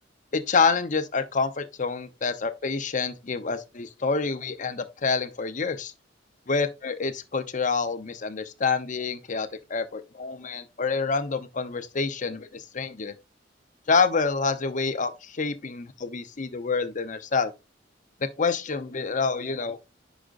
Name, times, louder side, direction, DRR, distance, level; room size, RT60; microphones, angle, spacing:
voice 1, 0.3-5.9 6.5-13.1 13.9-17.5 18.2-19.8, left 4 dB, 45° left, 0.8 m, -27 dB
9.9 x 5.0 x 2.5 m
head